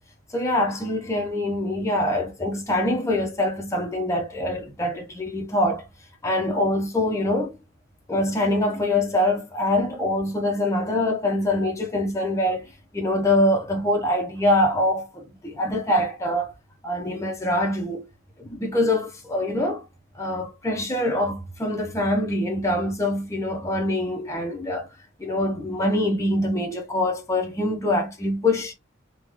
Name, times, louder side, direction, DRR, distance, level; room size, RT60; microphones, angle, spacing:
voice 1, 0.3-5.9 6.2-7.6 8.1-16.5 16.8-18.1 18.4-19.8 20.1-24.9 25.2-28.7, left 1 dB, 15° left, 0.7 m, -24 dB
3.6 x 2.3 x 3.1 m
head